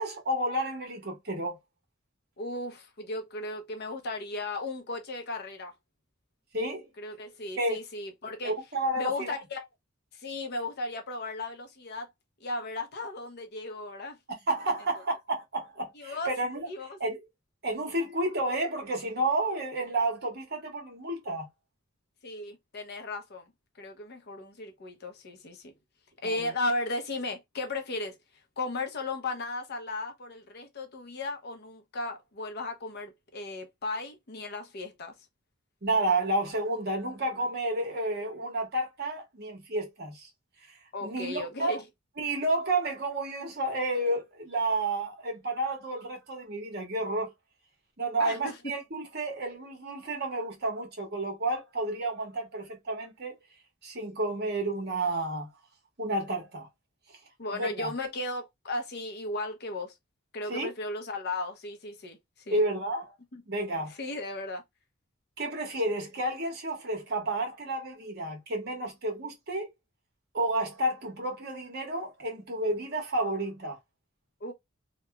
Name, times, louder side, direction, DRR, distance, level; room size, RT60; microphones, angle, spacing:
voice 1, 0.0-1.6 6.5-6.9 7.6-7.8 8.4-9.3 14.5-16.7 17.0-17.2 17.6-21.5 26.2-26.4 35.8-40.3 41.0-41.8 42.2-47.3 48.0-53.3 53.8-55.5 56.0-56.7 57.5-57.9 60.5-60.7 62.5-63.1 63.5-63.9 65.4-69.7 70.3-73.8, right 2 dB, 55° right, 1.2 m, -31 dB
voice 2, 2.4-5.7 7.0-8.5 9.0-9.7 10.1-12.1 12.4-14.2 15.9-16.3 16.7-17.0 22.2-23.5 23.8-25.7 26.2-28.2 28.6-35.1 40.9-41.8 48.2-48.6 57.4-59.9 60.3-62.2 62.5-62.6 63.3-63.4 64.0-64.6 74.4-74.5, left 2 dB, 55° left, 0.7 m, -35 dB
2.9 x 2.2 x 2.2 m
head